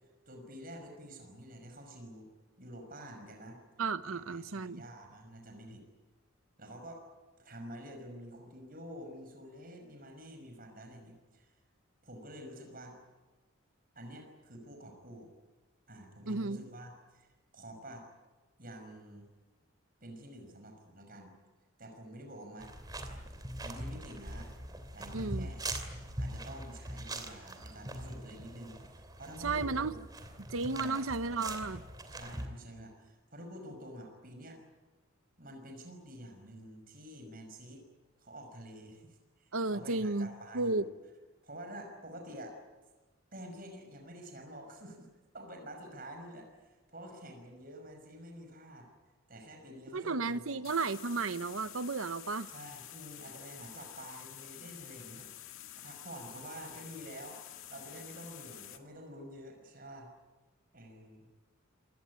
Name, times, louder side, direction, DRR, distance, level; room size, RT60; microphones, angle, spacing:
voice 1, 0.3-2.3 2.6-3.6 4.0-5.8 6.6-7.1 7.4-11.5 12.0-13.0 14.0-15.3 15.9-18.1 18.6-19.3 20.0-21.4 21.8-22.7 23.6-24.5 24.9-25.6 26.2-30.0 30.7-30.9 32.1-34.6 35.4-37.8 38.2-40.9 41.4-42.6 43.3-45.1 45.3-48.9 49.3-50.6 52.5-57.4 57.7-60.1 60.7-61.3, equal, 45° right, 5.8 m, -48 dB
voice 2, 3.8-4.8 16.3-16.6 25.1-25.5 29.4-29.9 30.4-31.8 39.5-40.8 49.9-52.5, right 3 dB, 80° right, 1.0 m, -33 dB
sound 1, 22.6-32.5, right 1 dB, 20° right, 2.8 m, -42 dB
sound 2, 50.6-58.8, left 12 dB, 80° left, 2.0 m, -49 dB
27.5 x 18.0 x 9.7 m
head